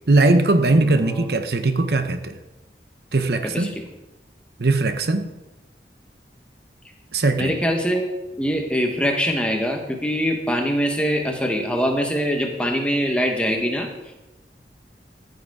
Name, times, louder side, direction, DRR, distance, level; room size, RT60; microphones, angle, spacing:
voice 1, 0.1-2.4 3.1-3.7 4.6-5.3 7.1-7.5, right 2 dB, 65° right, 8 dB, 0.8 m, -19 dB
voice 2, 0.7-1.3 3.4-3.8 7.4-8.0 8.4-13.9, equal, 5° left, 2 dB, 1.2 m, -23 dB
14.0 x 6.7 x 4.9 m, 1.0 s
head